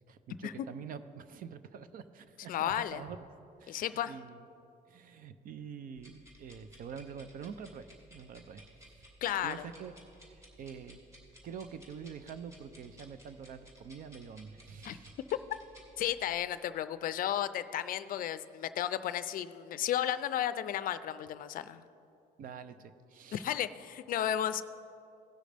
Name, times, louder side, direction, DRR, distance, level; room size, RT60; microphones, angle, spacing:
voice 1, 0.1-3.3 3.6-4.4 4.9-9.1 9.4-9.9 10.2-11.0 11.4-15.2 22.4-23.5, right 6 dB, 55° right, 12 dB, 0.6 m, -46 dB
voice 2, 2.5-3.0 3.7-4.1 9.2-9.6 14.8-15.0 16.0-21.8 23.3-24.6, left 11 dB, 55° left, 13 dB, 0.4 m, -33 dB
sound 1, 6.0-16.4, equal, 15° right, 2.3 m, -57 dB
17.0 x 6.3 x 3.4 m, 2.7 s
cardioid pair, 110°, 17 cm